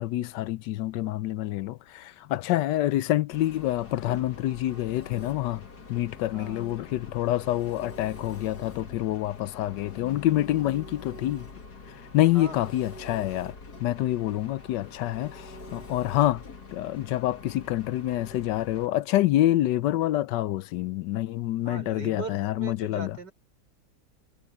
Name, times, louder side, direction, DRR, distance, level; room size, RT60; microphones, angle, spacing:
voice 1, 0.0-5.6 5.9-11.5 11.9-16.4 16.7-23.2, left 14 dB, 90° left, 1.3 m, -27 dB
Engine, 3.3-18.9, left 4 dB, 65° left, 2.7 m, -45 dB
voice 2, 6.3-6.6 12.3-12.7 21.6-23.3, right 3 dB, 80° right, 5.0 m, -39 dB
omnidirectional pair, 1.8 m